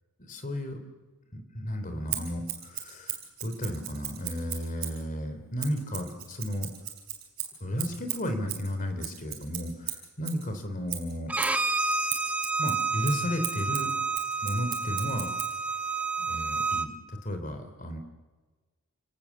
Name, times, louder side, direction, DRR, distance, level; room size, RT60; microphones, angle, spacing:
voice 1, 0.2-0.8 1.3-6.7 7.6-11.3 12.6-13.9 14.4-15.3 16.2-16.9 17.2-18.0, equal, 40° left, 7 dB, 3.3 m, -33 dB
Scissors, 2.1-5.0 5.6-10.5 10.9-15.6, right 11 dB, 45° right, 4.8 m, -37 dB
Bowed string instrument, 11.3-16.9, right 3 dB, 5° right, 1.0 m, -30 dB
29.0 x 18.5 x 7.3 m, 1.3 s
head